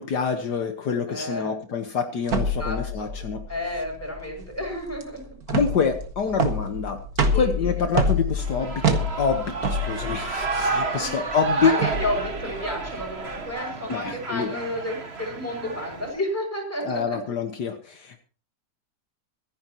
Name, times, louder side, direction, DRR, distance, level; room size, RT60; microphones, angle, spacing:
voice 1, 0.0-3.5 5.5-7.0 7.3-11.8 13.9-14.5 16.8-18.2, left 6 dB, 70° left, 6 dB, 1.8 m, -26 dB
voice 2, 1.1-1.5 2.6-3.1 3.5-5.2 7.3-7.7 11.0-11.1 11.6-17.2, left 1 dB, 10° left, 1 dB, 6.3 m, -31 dB
sound 1, 2.3-13.5, right 1 dB, 60° right, 2.2 m, -27 dB
Shout / Cheering, 8.4-16.1, right 4 dB, 35° right, 1.8 m, -31 dB
25.5 x 10.5 x 2.9 m, 0.40 s
omnidirectional pair, 1.9 m